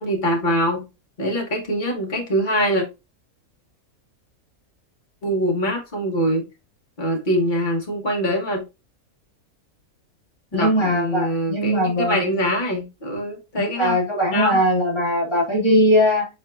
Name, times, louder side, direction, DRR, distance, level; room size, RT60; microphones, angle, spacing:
voice 1, 0.0-0.9 1.2-2.8 5.2-6.5 7.0-8.6 10.5-13.9 14.3-14.6, equal, 35° left, 1.2 m, -23 dB
voice 2, 10.5-12.2 13.6-16.3, equal, 20° left, 1.7 m, -20 dB
4.6 x 4.4 x 2.5 m
omnidirectional pair, 1.5 m